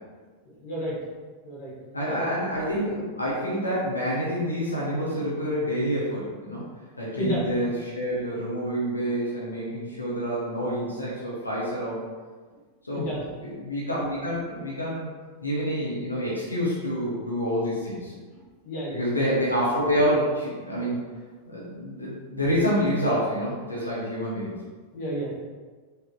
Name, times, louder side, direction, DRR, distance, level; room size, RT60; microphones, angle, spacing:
voice 1, 0.6-0.9 1.4-1.7 2.1-2.3 7.2-7.4 12.9-13.2 18.6-19.3 24.9-25.3, equal, 50° left, -5 dB, 1.5 m, -31 dB
voice 2, 1.9-6.7 7.0-12.0 12.8-13.0 13.4-15.1 15.4-18.1 18.9-21.0 21.4-24.5, equal, 80° left, -7 dB, 0.9 m, -27 dB
4.8 x 3.2 x 3.0 m, 1.4 s
figure-of-eight pair, 90°, 0 cm